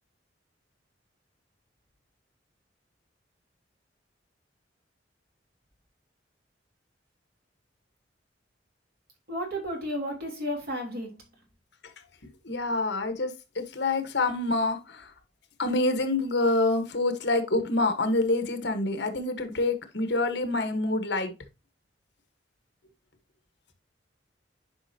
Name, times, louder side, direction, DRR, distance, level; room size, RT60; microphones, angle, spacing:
voice 1, 9.3-11.1, equal, 55° right, 3.3 m, -32 dB
voice 2, 12.4-15.1 15.6-21.3, left 2 dB, 65° left, 1.3 m, -27 dB
9.8 x 5.2 x 2.8 m
head